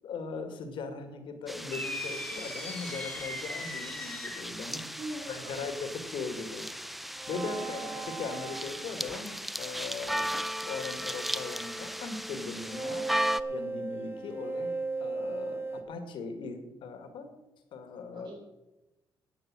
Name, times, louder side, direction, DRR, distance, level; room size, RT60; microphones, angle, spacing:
voice 1, 0.0-4.8 5.3-6.7 7.3-10.3 10.7-13.1 13.5-14.7 15.0-17.3 17.7-18.3, left 4 dB, 75° left, 7 dB, 2.1 m, -39 dB
sound 1, 1.5-13.4, equal, ahead, 0.6 m, -37 dB
sound 2, 1.7-4.6, left 2 dB, 15° left, 2.0 m, -39 dB
voice 2, 5.0-5.7 7.6-8.1 18.1-18.4, right 2 dB, 60° right, -3 dB, 3.9 m, -43 dB
sound 3, 7.2-9.4 12.6-15.8, right 3 dB, 25° right, 2.1 m, -37 dB
11.0 x 7.5 x 8.9 m, 1.0 s
cardioid pair, 85°, 8 cm